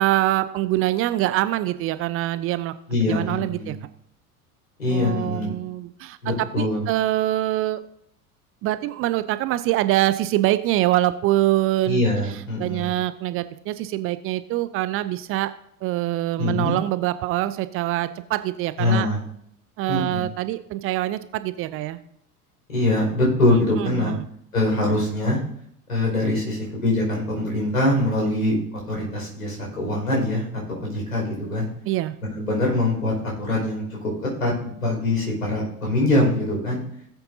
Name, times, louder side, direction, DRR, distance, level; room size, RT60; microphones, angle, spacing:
voice 1, 0.0-2.7 3.1-3.8 4.9-7.8 8.6-12.0 12.3-15.5 15.8-19.1 19.8-22.0 23.8-24.3 31.9-32.2, right 15 dB, 30° right, 13 dB, 0.5 m, -24 dB
voice 2, 2.9-3.8 4.8-5.6 6.2-6.8 11.9-12.9 16.4-16.8 18.8-19.2 19.9-20.2 22.7-24.1 24.5-25.4 25.9-28.6 28.9-30.5 30.8-31.7 32.2-33.1 33.4-33.8 34.2-36.8, left 1 dB, 80° left, -2 dB, 5.1 m, -23 dB
18.5 x 7.9 x 2.7 m, 0.72 s
figure-of-eight pair, 75°, 45 cm